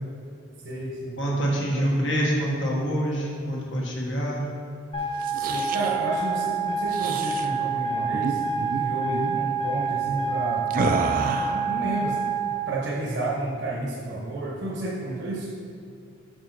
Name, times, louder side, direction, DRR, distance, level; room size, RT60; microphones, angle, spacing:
voice 1, 0.6-1.2 1.7-1.9 5.3-10.7 11.5-12.2 12.7-15.5, right 2 dB, 60° right, -5 dB, 0.9 m, -31 dB
voice 2, 1.2-4.4, right 1 dB, 65° left, -3 dB, 1.3 m, -26 dB
sound 1, 4.9-12.5, right 4 dB, 25° left, 1.1 m, -27 dB
sound 2, 5.1-6.0 6.9-7.5 8.1-8.4 8.6-8.8 9.1-9.4 10.7-11.7, right 4 dB, 45° right, 0.3 m, -28 dB
6.5 x 4.6 x 4.5 m, 2.6 s
head